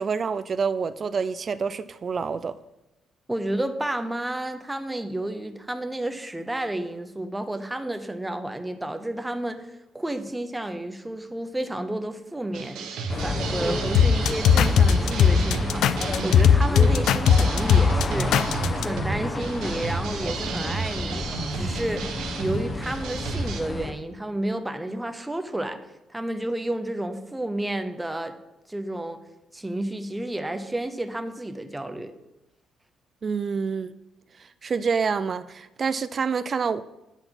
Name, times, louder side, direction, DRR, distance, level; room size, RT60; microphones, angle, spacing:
voice 1, 0.0-2.6 33.2-33.9 34.4-36.8, right 5 dB, 45° right, 14 dB, 0.3 m, -27 dB
voice 2, 3.3-9.7 9.9-12.9 13.2-18.4 18.7-21.3 21.5-25.8 26.1-28.3 28.7-29.2 29.5-32.1, right 1 dB, 10° right, 7 dB, 0.7 m, -31 dB
sound 1, 12.5-23.6, right 4 dB, 85° right, 0.9 m, -32 dB
sound 2, 13.1-23.9, left 2 dB, 30° left, 1.1 m, -31 dB
sound 3, 13.9-18.8, left 7 dB, 80° left, 0.4 m, -18 dB
8.8 x 4.0 x 5.9 m, 0.96 s
cardioid pair, 90°, 0 cm